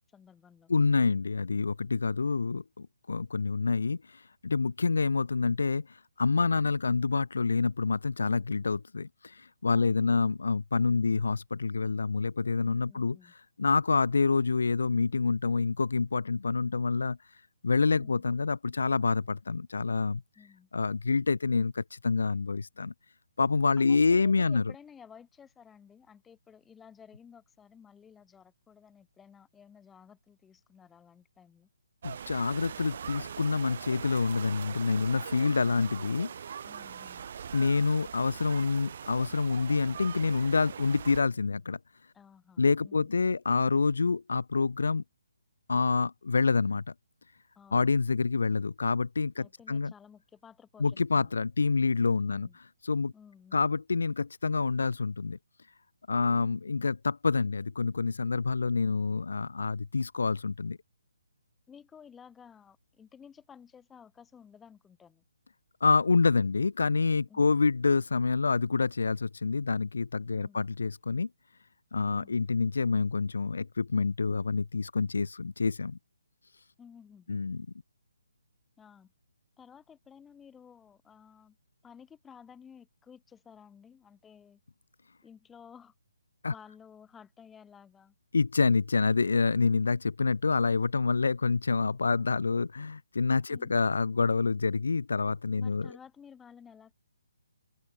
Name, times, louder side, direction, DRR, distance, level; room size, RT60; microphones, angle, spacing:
voice 1, 0.1-0.7 9.7-10.3 12.9-13.3 18.0-18.2 20.3-20.7 23.8-31.7 36.6-37.2 42.1-43.2 47.5-48.0 49.4-51.3 52.3-52.6 53.1-53.7 61.7-65.2 67.3-67.6 70.3-70.7 76.8-77.4 78.8-79.1 79.6-81.6 81.8-84.6 85.2-85.9 86.5-88.1 93.5-93.8 95.6-97.0, left 7 dB, 10° left, 4.8 m, -54 dB
voice 2, 0.7-13.2 13.6-17.2 17.6-20.2 20.7-22.9 23.4-24.6 32.0-36.3 37.5-41.8 42.6-45.0 45.7-46.8 47.7-49.9 50.8-52.5 52.8-53.1 53.5-55.4 56.1-60.8 65.8-71.3 71.9-76.0 77.3-77.7 86.4-86.5 88.3-95.9, left 4 dB, 80° left, 0.6 m, -27 dB
sound 1, 32.0-41.2, right 7 dB, 50° right, 5.0 m, -42 dB
hypercardioid pair, 160°, 0 cm